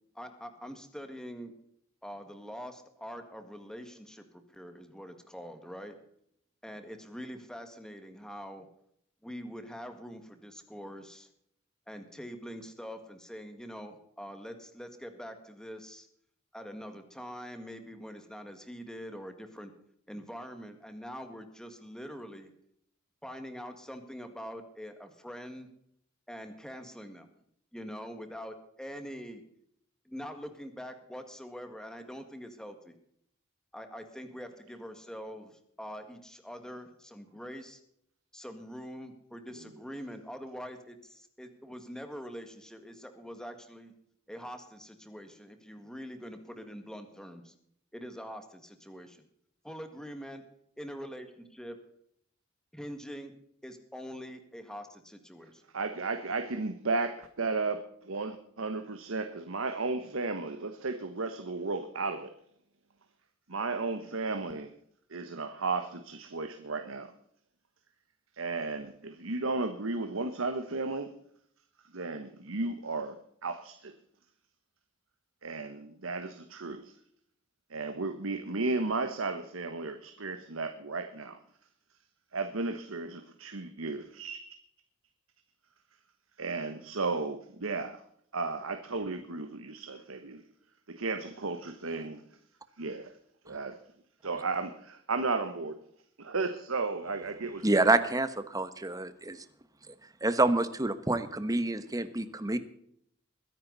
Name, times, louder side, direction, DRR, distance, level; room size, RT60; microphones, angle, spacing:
voice 1, 0.2-1.5 2.0-6.0 6.6-8.7 9.2-11.3 11.9-16.1 16.5-19.7 20.1-22.5 23.2-25.7 26.3-27.3 27.7-29.4 30.1-32.9 33.7-37.8 38.3-43.9 44.3-47.5 47.9-49.2 49.6-50.4 50.8-51.8 52.7-53.3 53.6-55.6, equal, 5° left, 7 dB, 1.8 m, -44 dB
voice 2, 55.7-62.3 63.5-64.7 65.1-67.1 68.3-71.1 71.9-73.9 75.4-76.9 77.7-81.4 82.3-84.4 86.4-88.0 88.3-90.4 90.9-92.2 92.8-93.1 93.4-93.8 94.2-95.8 96.2-98.0, right 3 dB, 85° right, 8 dB, 1.2 m, -34 dB
voice 3, 97.6-99.4 100.2-102.6, right 2 dB, 20° right, 11 dB, 1.1 m, -27 dB
22.0 x 10.5 x 4.0 m, 0.68 s
head